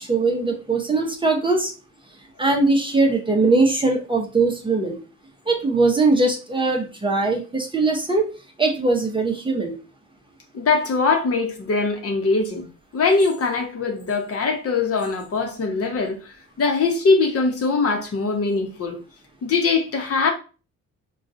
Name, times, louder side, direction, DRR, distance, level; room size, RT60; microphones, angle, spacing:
voice 1, 0.0-1.7 2.4-5.0 5.5-8.3 8.6-9.8, right 3 dB, 15° right, 0.7 m, -20 dB
voice 2, 10.5-12.6 12.9-19.0 19.4-20.3, left 4 dB, 50° left, 0.9 m, -22 dB
3.7 x 2.3 x 2.6 m
cardioid pair, 90°, 30 cm